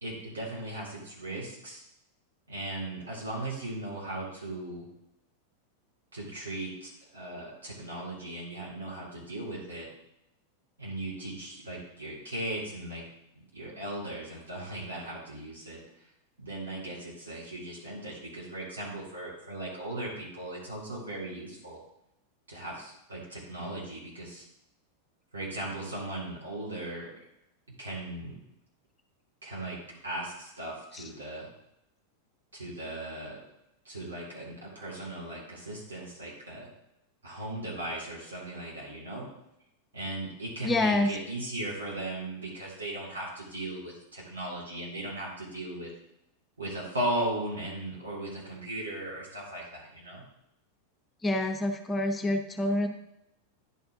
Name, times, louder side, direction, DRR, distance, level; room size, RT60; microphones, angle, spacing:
voice 1, 0.0-1.8 2.5-4.9 6.1-9.9 10.8-13.0 13.5-15.8 16.4-21.8 22.5-24.4 25.3-27.1 27.8-28.4 29.4-31.5 32.5-33.4 33.8-36.7 37.2-39.3 39.9-45.9 46.6-50.2, right 1 dB, 70° right, -5 dB, 3.2 m, -37 dB
voice 2, 40.6-41.1 51.2-52.9, left 1 dB, 15° left, 5 dB, 0.6 m, -27 dB
10.5 x 4.8 x 3.7 m, 0.82 s
figure-of-eight pair, 90°, 0 cm